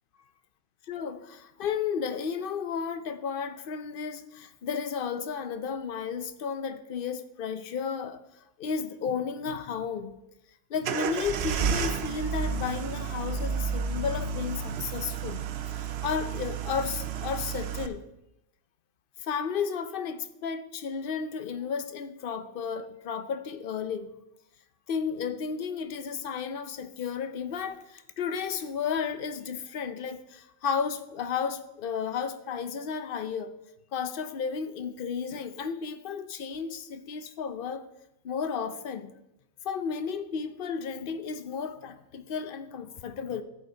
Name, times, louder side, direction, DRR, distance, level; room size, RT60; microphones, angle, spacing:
voice 1, 0.9-8.2 8.6-10.2 10.7-18.0 19.2-24.1 24.9-33.5 33.9-37.9 38.2-39.2 39.6-43.4, left 6 dB, 55° left, 0.8 m, -33 dB
sound 1, 10.8-17.9, right 6 dB, 65° right, 0.8 m, -31 dB
14.0 x 5.3 x 3.9 m
omnidirectional pair, 1.2 m